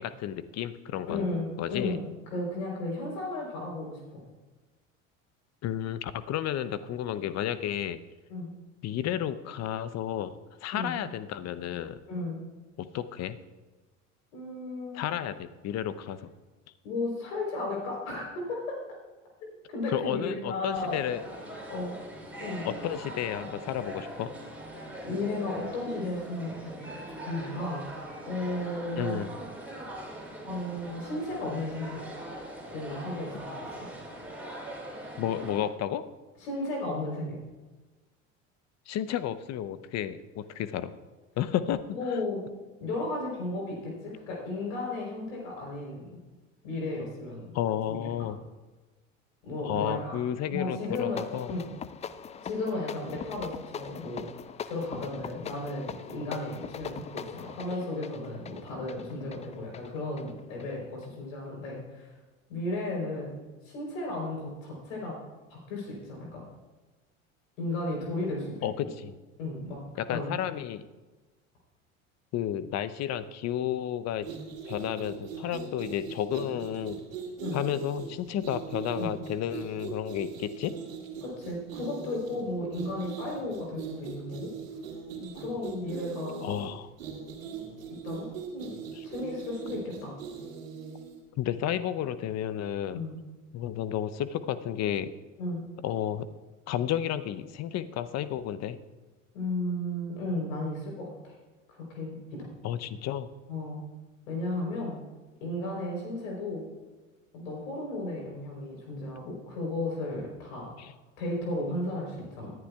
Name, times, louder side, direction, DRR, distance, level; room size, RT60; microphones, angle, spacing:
voice 1, 0.0-1.3 1.6-2.0 5.6-8.0 8.8-10.3 10.6-12.0 12.8-13.4 14.9-16.3 19.9-21.2 22.7-24.3 29.0-29.3 35.2-36.0 38.9-40.9 41.4-42.0 47.5-48.4 49.6-51.5 68.6-69.1 70.0-70.9 72.3-74.3 74.7-77.0 77.5-80.7 86.4-86.9 89.0-89.1 91.4-93.0 93.5-95.1 95.8-96.3 96.7-98.8 102.6-103.3 110.8-110.9, left 10 dB, 40° left, 14 dB, 0.7 m, -32 dB
voice 2, 1.1-4.2 8.3-8.5 10.7-11.0 12.1-12.4 14.3-15.0 16.8-18.8 19.4-21.0 21.7-21.9 22.4-22.7 25.0-29.2 30.4-32.0 32.7-33.8 36.4-37.4 41.9-42.4 42.8-46.2 46.6-47.4 47.9-48.3 49.4-50.2 50.5-51.7 52.4-54.3 54.6-62.1 62.5-63.4 63.6-65.1 65.5-66.4 67.6-68.7 69.4-69.8 70.1-70.3 77.4-77.6 79.0-79.2 81.2-84.5 85.1-86.4 88.0-88.7 89.0-90.2 92.9-93.2 95.4-95.6 99.3-101.3 101.7-102.5 103.5-103.8 104.3-105.0 105.4-106.6 107.3-110.7 111.2-112.5, left 2 dB, 75° left, -1 dB, 3.8 m, -34 dB
sound 1, 20.7-35.7, right 1 dB, 5° right, 4.2 m, -41 dB
sound 2, 50.8-61.2, left 7 dB, 20° left, 0.3 m, -42 dB
sound 3, 74.2-91.2, right 6 dB, 80° right, 2.2 m, -41 dB
19.0 x 11.0 x 2.3 m, 1.2 s
hypercardioid pair, 75°, 39 cm